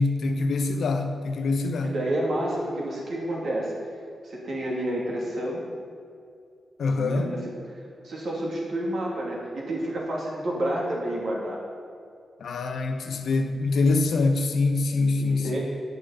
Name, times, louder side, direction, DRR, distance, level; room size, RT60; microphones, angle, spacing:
voice 1, 0.0-1.9 6.8-7.3 12.4-15.6, left 3 dB, 75° left, 6 dB, 0.8 m, -24 dB
voice 2, 1.8-3.7 4.2-5.7 7.0-7.5 8.0-11.6 15.0-15.6, right 1 dB, 70° right, -3 dB, 2.6 m, -29 dB
9.7 x 6.5 x 5.7 m, 2.4 s
supercardioid pair, 50°, 0 cm